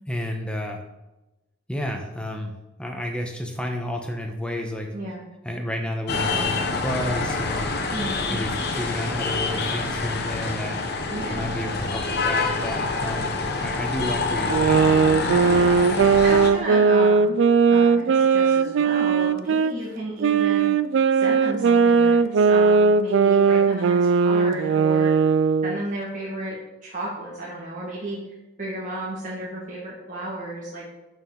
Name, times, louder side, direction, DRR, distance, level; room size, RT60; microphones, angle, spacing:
voice 1, 0.1-0.8 1.7-2.5 2.8-4.9 5.4-7.7 8.3-10.8 11.3-15.0, left 1 dB, 5° left, 2 dB, 0.9 m, -31 dB
sound 1, 6.1-16.5, left 3 dB, 50° left, 0.8 m, -26 dB
voice 2, 7.9-8.5 11.1-11.6 15.4-15.8 16.2-17.3 17.7-20.7 21.1-25.1 25.6-26.6 26.8-28.2 28.6-30.9, right 1 dB, 40° right, -7 dB, 1.8 m, -33 dB
sound 2, 14.5-19.7 20.2-25.8, right 5 dB, 70° right, 0.3 m, -19 dB
11.0 x 4.9 x 3.9 m, 1.0 s
head